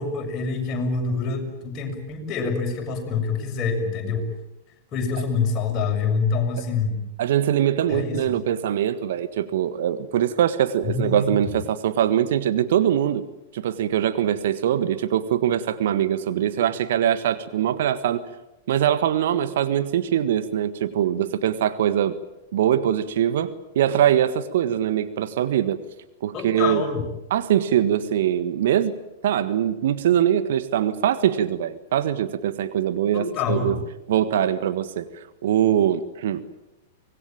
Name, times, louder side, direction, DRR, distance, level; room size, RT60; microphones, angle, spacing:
voice 1, 0.0-4.3 4.9-7.0 7.9-8.4 10.9-11.5 26.3-27.1 33.1-33.8, left 4 dB, 35° left, 1 dB, 7.1 m, -26 dB
voice 2, 7.2-13.2 13.5-18.2 18.7-22.2 22.5-25.8 26.2-26.8 27.3-28.9 29.2-33.8 34.1-36.4, right 10 dB, 60° right, 12 dB, 1.5 m, -22 dB
25.0 x 20.0 x 9.0 m, 0.90 s
figure-of-eight pair, 100°, 0 cm